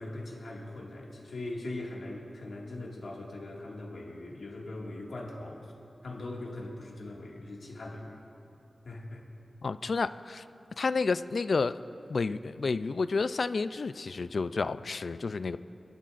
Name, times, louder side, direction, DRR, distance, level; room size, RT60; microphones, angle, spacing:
voice 1, 0.0-5.7 6.0-8.2 8.8-9.2, left 2 dB, 80° left, -3 dB, 2.0 m, -40 dB
voice 2, 9.6-10.4 10.8-11.8 12.1-15.6, left 4 dB, 65° left, 13 dB, 0.3 m, -30 dB
27.0 x 12.0 x 2.5 m, 2.8 s
wide cardioid pair, 115°, 0 cm